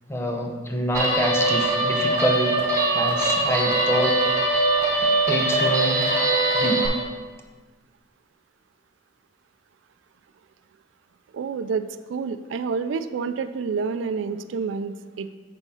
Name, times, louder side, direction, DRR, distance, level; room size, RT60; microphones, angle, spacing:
voice 1, 0.1-2.6 2.9-4.2 5.3-6.1 6.5-6.9, equal, 15° left, 2 dB, 0.6 m, -26 dB
Guitar, 0.9-6.9, right 2 dB, 15° right, 1.5 m, -22 dB
voice 2, 11.3-15.3, right 5 dB, 80° right, 11 dB, 0.3 m, -28 dB
6.8 x 3.5 x 5.5 m, 1.4 s
head